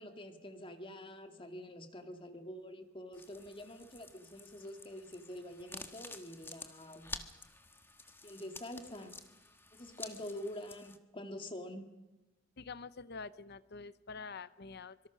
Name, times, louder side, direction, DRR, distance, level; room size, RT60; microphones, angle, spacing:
voice 1, 0.0-7.2 8.2-9.2 9.7-11.9, left 1 dB, 25° left, 6 dB, 2.2 m, -46 dB
sound 1, 3.1-11.0, left 2 dB, 10° left, 1.4 m, -50 dB
voice 2, 12.6-15.1, left 4 dB, 55° left, 15 dB, 0.9 m, -47 dB
25.0 x 24.0 x 6.2 m, 1.1 s
head